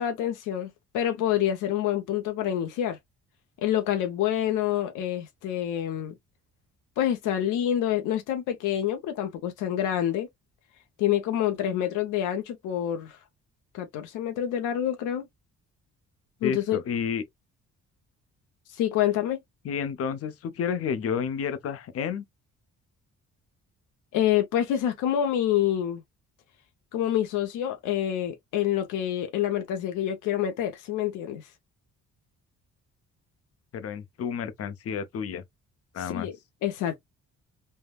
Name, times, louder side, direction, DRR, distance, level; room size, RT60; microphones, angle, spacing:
voice 1, 0.0-3.0 3.6-6.1 7.0-10.3 11.0-13.2 13.7-15.3 16.4-16.8 18.7-19.4 24.1-26.0 26.9-31.5 36.1-36.4 36.6-37.0, left 11 dB, 90° left, 0.7 m, -27 dB
voice 2, 16.4-17.2 19.6-22.2 33.7-35.4 35.9-36.3, left 7 dB, 50° left, 0.6 m, -30 dB
3.4 x 2.1 x 2.2 m
cardioid pair, 90°, 30 cm